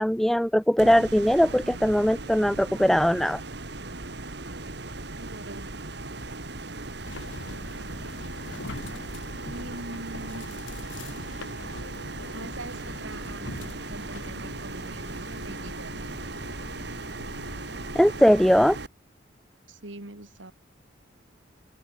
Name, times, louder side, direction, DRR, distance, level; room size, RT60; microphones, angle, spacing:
voice 1, 0.0-3.4 17.9-18.8, equal, ahead, 0.3 m, -20 dB
sound 1, 0.8-18.9, right 2 dB, 65° right, 2.8 m, -37 dB
voice 2, 5.2-5.7 9.5-10.5 12.3-16.1 19.7-20.5, right 2 dB, 85° right, 3.4 m, -42 dB
sound 2, 7.0-18.6, left 3 dB, 85° left, 1.3 m, -44 dB
head